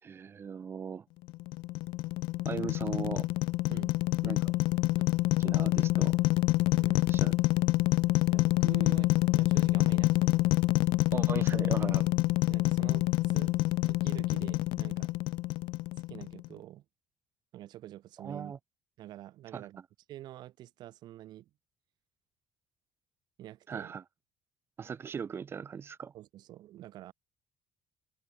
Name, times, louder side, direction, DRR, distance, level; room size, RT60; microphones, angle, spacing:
voice 1, 0.0-1.0 2.4-3.3 4.2-4.5 5.4-6.2 7.1-7.3 11.1-12.1 18.2-18.6 19.5-19.7 23.7-24.0 24.8-26.1, right 7 dB, 30° right, 4.8 m, -38 dB
sound 1, 1.3-16.5, left 19 dB, 80° left, 1.8 m, -27 dB
voice 2, 6.7-7.0 8.3-10.5 12.5-15.1 16.1-16.8 17.5-18.5 19.0-19.8 20.1-21.5 23.4-23.9 26.1-27.1, right 14 dB, 60° right, 7.8 m, -47 dB
open air
cardioid pair, 160°, 8 cm